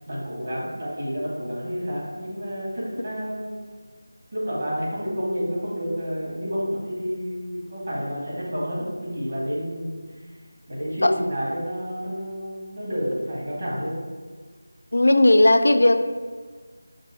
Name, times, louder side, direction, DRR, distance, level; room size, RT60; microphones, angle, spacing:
voice 1, 0.1-3.6 4.3-10.3 10.7-14.0, equal, 45° right, -6 dB, 1.4 m, -30 dB
voice 2, 14.9-16.1, left 1 dB, 70° left, 8 dB, 0.4 m, -16 dB
5.1 x 2.0 x 4.5 m, 1.5 s
figure-of-eight pair, 170°, 0 cm